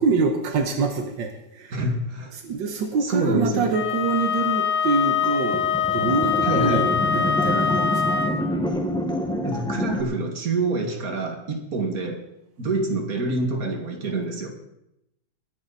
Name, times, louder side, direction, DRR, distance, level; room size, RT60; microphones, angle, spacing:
voice 1, 0.0-1.8 2.3-5.6 5.9-8.2, right 4 dB, 85° right, 5 dB, 1.9 m, -25 dB
voice 2, 1.7-2.4 3.0-3.8 6.4-6.9 9.4-12.2 12.6-14.5, right 2 dB, 55° right, 3 dB, 2.5 m, -26 dB
Wind instrument woodwind instrument, 3.7-8.4, left 6 dB, 30° left, 0.9 m, -23 dB
sound 1, 5.2-10.0, left 1 dB, 5° left, 1.3 m, -27 dB
22.0 x 10.0 x 4.1 m, 0.85 s
omnidirectional pair, 1.9 m